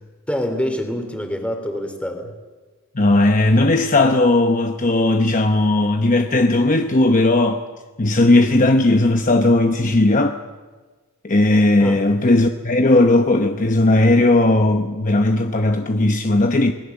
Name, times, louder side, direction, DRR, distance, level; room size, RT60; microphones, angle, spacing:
voice 1, 0.3-2.3 11.8-12.0, equal, 5° left, 3.0 m, -25 dB
voice 2, 2.9-7.6 8.0-10.4 11.2-16.7, left 2 dB, 35° left, 0.9 m, -16 dB
27.0 x 20.0 x 7.1 m
head